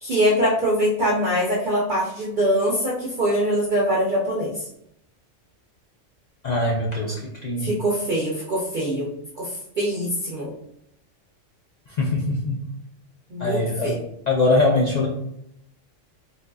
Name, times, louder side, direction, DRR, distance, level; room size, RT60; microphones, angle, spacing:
voice 1, 0.0-4.6 7.6-9.1 9.4-9.5 9.8-10.5 13.3-14.0, equal, 50° right, -5 dB, 0.7 m, -23 dB
voice 2, 6.4-7.7 12.0-12.6 13.4-14.0 14.3-15.1, left 2 dB, 65° left, -4 dB, 0.4 m, -22 dB
4.0 x 2.4 x 2.2 m, 0.77 s
omnidirectional pair, 1.3 m